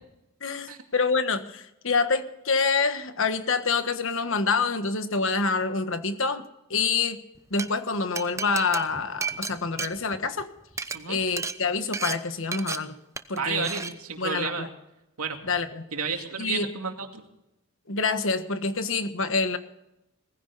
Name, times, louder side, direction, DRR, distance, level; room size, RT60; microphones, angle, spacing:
voice 1, 0.4-6.4 6.7-7.2 7.5-10.5 11.1-12.9 13.3-13.7 14.2-14.7 15.5-15.9 16.4-16.7 17.9-19.6, left 4 dB, 60° left, 9 dB, 1.4 m, -26 dB
Glass, 7.4-7.7 8.2-10.4 10.7-11.0 11.4-11.6 11.9-12.2 12.5-12.8 13.2-13.4 13.6-13.9, right 5 dB, 15° right, 0.7 m, -32 dB
voice 2, 13.4-14.7 15.2-15.4 15.9-17.2, right 6 dB, 80° right, 4 dB, 2.4 m, -31 dB
20.0 x 15.5 x 4.2 m, 0.87 s
head